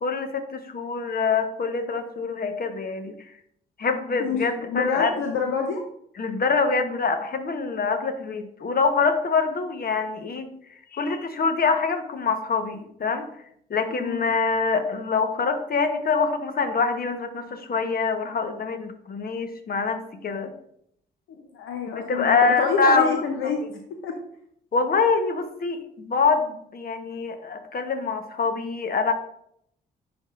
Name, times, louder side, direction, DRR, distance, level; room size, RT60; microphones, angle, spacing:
voice 1, 0.0-3.2 3.8-5.1 6.2-10.5 10.9-13.3 13.7-20.5 21.9-23.2 24.7-25.8 26.1-29.1, left 4 dB, 45° left, 7 dB, 1.0 m, -25 dB
voice 2, 4.2-5.8 13.9-14.2 21.5-23.6 24.0-24.1, left 5 dB, 70° left, 4 dB, 0.7 m, -27 dB
10.5 x 3.6 x 2.5 m, 0.70 s
hypercardioid pair, 50°, 21 cm